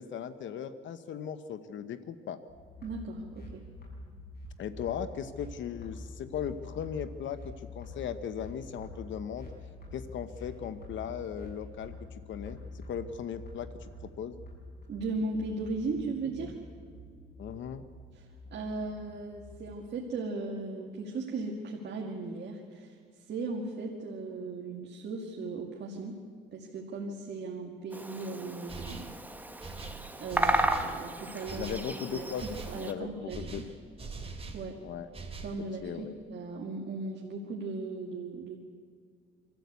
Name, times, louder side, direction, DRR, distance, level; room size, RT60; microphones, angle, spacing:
voice 1, 0.0-2.4 4.6-9.5 9.9-14.4 17.4-17.8 31.5-33.6 34.8-35.1 35.8-36.1, left 8 dB, 70° left, 11 dB, 1.0 m, -38 dB
sound 1, 2.5-19.7, left 2 dB, 50° left, 7.4 m, -47 dB
voice 2, 2.8-3.6 14.9-16.7 18.1-23.0 23.3-26.2 26.5-29.1 30.2-31.7 32.1-32.3 32.7-33.5 34.5-34.8 35.4-38.6, right 3 dB, 60° right, 0 dB, 2.3 m, -37 dB
Bird vocalization bird call bird song, 27.9-32.9, right 1 dB, 10° right, 1.5 m, -33 dB
sound 2, 28.7-29.2 29.6-31.0 31.4-31.9 32.4-32.8 33.3-34.7 35.1-35.6, right 4 dB, 30° right, 3.1 m, -42 dB
26.0 x 14.0 x 8.3 m, 2.1 s
cardioid pair, 90°, 20 cm